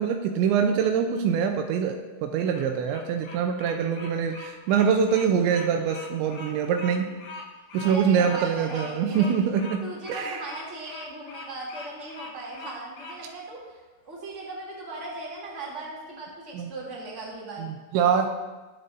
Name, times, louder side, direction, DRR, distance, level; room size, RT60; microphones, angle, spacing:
voice 1, 0.0-7.1 7.7-9.8 10.1-10.4 16.5-16.7 17.6-18.3, right 7 dB, 85° right, 5 dB, 2.9 m, -24 dB
Bird vocalization bird call bird song, 2.3-13.2, left 3 dB, 75° left, 4.7 m, -42 dB
voice 2, 7.8-9.3 9.8-17.7, right 2 dB, 20° right, -4 dB, 2.4 m, -38 dB
21.0 x 7.6 x 2.7 m, 1.3 s
omnidirectional pair, 5.4 m